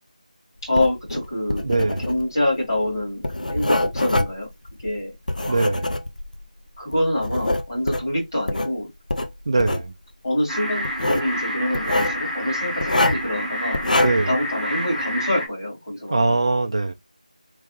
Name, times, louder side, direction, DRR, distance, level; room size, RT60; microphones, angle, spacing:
Writing, 0.6-6.4 6.9-8.7 9.1-9.9 10.8-11.3 11.7-12.2 12.8-13.3 13.7-14.3, left 1 dB, 75° left, 0.7 m, -25 dB
voice 1, 0.6-4.5 4.8-5.7 6.8-8.9 10.2-13.8 14.3-16.3, left 1 dB, 30° left, 2.2 m, -26 dB
voice 2, 1.6-2.1 5.5-6.0 9.5-9.9 14.0-14.3 16.1-16.9, right 3 dB, 35° right, 0.5 m, -22 dB
sound 1, 10.5-15.5, equal, ahead, 1.1 m, -28 dB
3.5 x 3.4 x 3.0 m
figure-of-eight pair, 175°, 4 cm